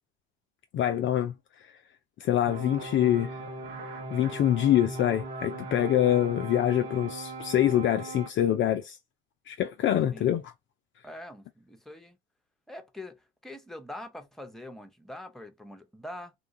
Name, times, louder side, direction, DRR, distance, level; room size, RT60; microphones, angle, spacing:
voice 1, 0.7-1.3 2.2-3.4 4.1-9.0 9.5-10.4, left 11 dB, 40° left, 0.4 m, -25 dB
sound 1, 2.5-8.3, right 2 dB, 80° right, 1.2 m, -39 dB
voice 2, 11.0-12.2 12.7-16.3, left 1 dB, ahead, 0.8 m, -44 dB
3.0 x 2.3 x 2.5 m
hypercardioid pair, 70°, 32 cm